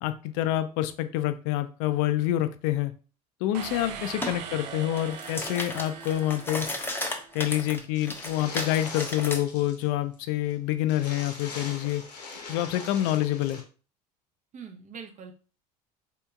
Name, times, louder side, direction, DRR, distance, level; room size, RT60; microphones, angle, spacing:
voice 1, 0.0-2.9 3.4-6.7 7.3-12.0 12.5-13.6, left 13 dB, 60° left, 12 dB, 0.4 m, -27 dB
sound 1, 3.5-7.3, right 7 dB, 80° right, 0.5 m, -41 dB
sound 2, 4.2-4.4 4.8-9.4, left 1 dB, 10° left, 0.6 m, -34 dB
sound 3, 7.9-9.9 10.1-10.2 10.5-10.6 10.9-13.6, left 3 dB, 75° left, 0.9 m, -42 dB
voice 2, 14.5-15.3, right 6 dB, 35° right, 4 dB, 0.6 m, -43 dB
3.5 x 2.8 x 2.2 m, 0.37 s
hypercardioid pair, 70°, 21 cm